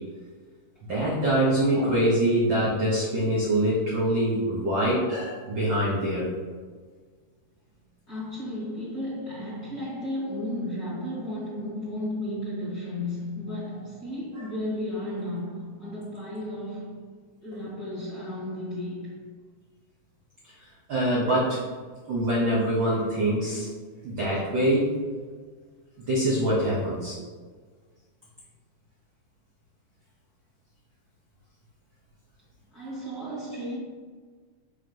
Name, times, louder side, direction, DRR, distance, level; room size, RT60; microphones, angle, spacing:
voice 1, 0.9-6.3 14.3-14.5 20.4-20.5 20.9-21.6 22.1-23.7 24.0-24.9 26.1-27.2, right 1 dB, 65° right, 1.2 m, -24 dB
voice 2, 8.1-17.1 17.4-19.3 32.7-33.8, left 1 dB, 40° left, 1.6 m, -34 dB
4.5 x 4.3 x 5.4 m
omnidirectional pair, 3.6 m